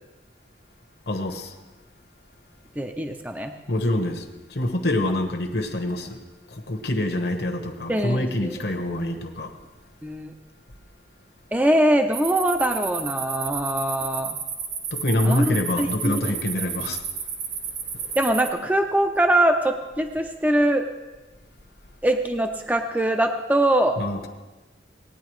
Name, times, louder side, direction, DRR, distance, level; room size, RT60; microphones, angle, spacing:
voice 1, 1.1-1.5 3.7-6.2 6.5-9.5 14.9-17.0 17.9-18.2 24.0-24.3, left 1 dB, 60° left, 4 dB, 1.1 m, -26 dB
voice 2, 2.8-3.5 7.9-8.6 8.9-9.1 10.0-10.3 11.5-14.4 15.2-16.4 18.2-20.9 22.0-24.0, right 1 dB, 10° right, 5 dB, 0.5 m, -23 dB
sound 1, 12.1-18.5, right 6 dB, 60° right, 1.3 m, -32 dB
18.5 x 9.5 x 3.2 m, 1.2 s
head